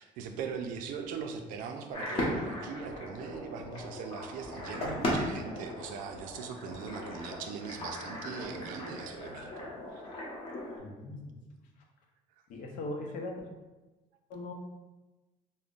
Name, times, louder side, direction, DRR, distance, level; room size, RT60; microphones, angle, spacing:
voice 1, 0.0-10.0, right 6 dB, 85° right, 5 dB, 0.4 m, -40 dB
sound 1, 1.9-10.8, left 1 dB, 40° left, 1.0 m, -37 dB
voice 2, 10.8-11.4 12.5-13.4 14.3-14.5, left 2 dB, 75° left, 2 dB, 0.6 m, -39 dB
5.1 x 2.1 x 2.4 m, 1.1 s
cardioid pair, 150°, 14 cm